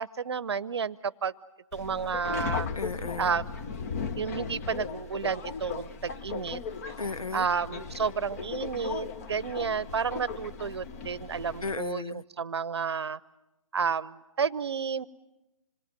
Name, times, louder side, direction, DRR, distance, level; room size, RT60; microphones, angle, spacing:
voice 1, 0.0-1.3 1.7-2.7 3.2-3.6 4.2-6.9 7.3-13.2 13.7-15.1, right 6 dB, 50° right, 0.8 m, -31 dB
Subway metro underground, 1.7-11.8, left 5 dB, 25° left, 1.0 m, -37 dB
voice 2, 2.7-3.4 7.0-7.5 11.6-12.2, left 4 dB, 80° left, 0.8 m, -35 dB
27.0 x 21.0 x 9.3 m
figure-of-eight pair, 140°, 18 cm